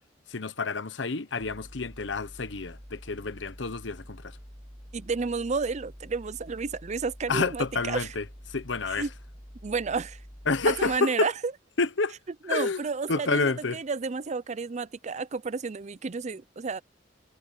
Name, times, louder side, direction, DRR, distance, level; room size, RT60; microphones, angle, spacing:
voice 1, 0.3-4.4 7.3-9.1 10.5-11.3 11.8-12.2 12.5-13.8, left 3 dB, 75° left, 1.0 m, -29 dB
sound 1, 1.4-11.0, equal, 5° left, 1.8 m, -47 dB
voice 2, 4.9-8.1 8.9-9.1 9.6-10.2 10.7-11.3 12.4-16.8, right 4 dB, 40° right, 0.5 m, -31 dB
head